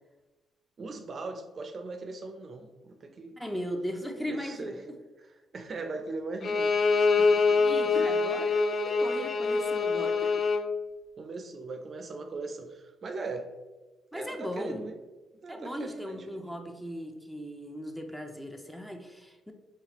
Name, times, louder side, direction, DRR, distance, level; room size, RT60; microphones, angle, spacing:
voice 1, 0.8-3.4 4.3-4.8 5.2-6.8 7.2-7.6 7.9-8.3 11.2-13.5 14.1-14.9 15.4-16.4, right 3 dB, 45° right, 5 dB, 0.5 m, -39 dB
voice 2, 3.4-5.0 7.6-10.3 14.1-14.9 15.5-19.5, equal, 5° left, 4 dB, 0.5 m, -38 dB
Bowed string instrument, 6.4-10.7, left 4 dB, 55° left, 0.4 m, -25 dB
4.7 x 3.2 x 2.9 m, 1.2 s
cardioid pair, 90°, 0 cm